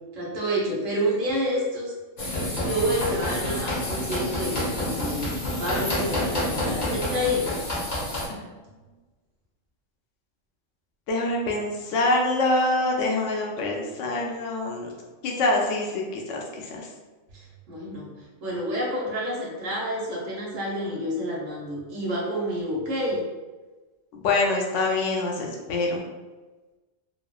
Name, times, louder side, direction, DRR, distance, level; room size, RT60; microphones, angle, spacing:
voice 1, 0.1-1.9 2.5-5.3 5.6-7.5 17.3-18.1 18.4-23.2, equal, 75° right, -5 dB, 1.1 m, -28 dB
sound 1, 2.2-8.3, left 1 dB, 40° left, 0.7 m, -28 dB
voice 2, 11.1-14.9 15.2-16.9 24.1-26.0, left 2 dB, 75° left, 0 dB, 0.9 m, -25 dB
3.1 x 2.1 x 2.3 m, 1.2 s
omnidirectional pair, 1.3 m